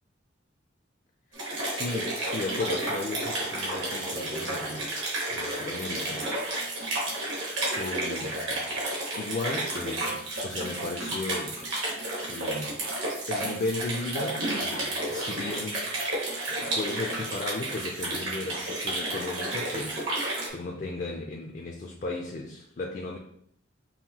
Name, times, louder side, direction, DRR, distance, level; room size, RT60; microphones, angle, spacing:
voice 1, 1.3-4.9 5.3-6.5 7.8-8.8 9.2-11.7 12.3-12.8 13.3-15.9 16.6-23.2, left 2 dB, 40° left, 1 dB, 0.4 m, -35 dB
sound 1, 1.3-20.5, right 1 dB, 80° right, 1.6 m, -31 dB
5.5 x 2.5 x 2.8 m, 0.68 s
head